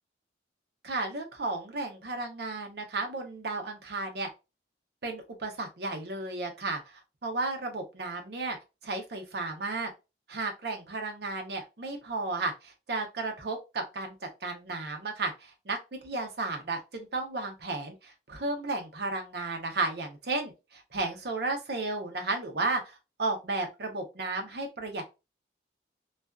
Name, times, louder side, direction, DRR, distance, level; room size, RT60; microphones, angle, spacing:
voice 1, 0.8-4.3 5.0-8.6 8.8-9.9 10.3-25.0, right 3 dB, 60° right, 3 dB, 0.6 m, -33 dB
2.5 x 2.3 x 2.2 m, 0.26 s
head